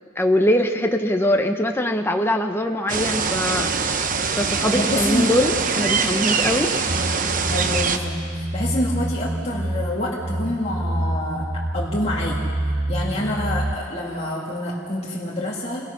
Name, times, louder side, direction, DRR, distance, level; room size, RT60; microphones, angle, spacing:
voice 1, 0.2-6.7, left 1 dB, 10° left, 4 dB, 0.9 m, -22 dB
sound 1, 2.9-8.0, right 5 dB, 40° right, 0.9 m, -23 dB
voice 2, 4.7-5.3 7.5-11.5 11.7-12.4 12.9-15.9, left 1 dB, 30° left, -5 dB, 2.2 m, -27 dB
sound 2, 6.9-13.8, right 1 dB, 25° right, 0.6 m, -27 dB
27.0 x 19.5 x 5.8 m, 2.3 s
head